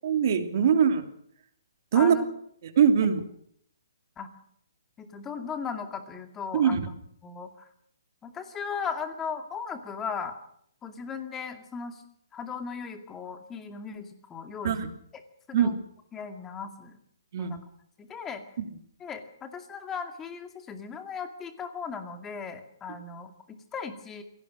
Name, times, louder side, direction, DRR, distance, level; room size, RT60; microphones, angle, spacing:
voice 1, 0.0-1.0 1.9-2.2 2.8-3.2 6.5-6.9 14.6-14.9 15.5-15.7 17.3-17.5 18.6-18.7, right 7 dB, 45° right, 7 dB, 2.9 m, -22 dB
voice 2, 1.9-2.3 4.2-4.3 5.0-6.9 7.2-7.7 8.2-10.4 10.8-12.0 12.3-14.7 15.5-15.8 16.1-16.9 17.4-17.6 18.0-18.4 19.0-24.2, left 6 dB, 10° left, 7 dB, 2.4 m, -37 dB
25.0 x 17.5 x 6.4 m, 0.67 s
hypercardioid pair, 155°, 2 cm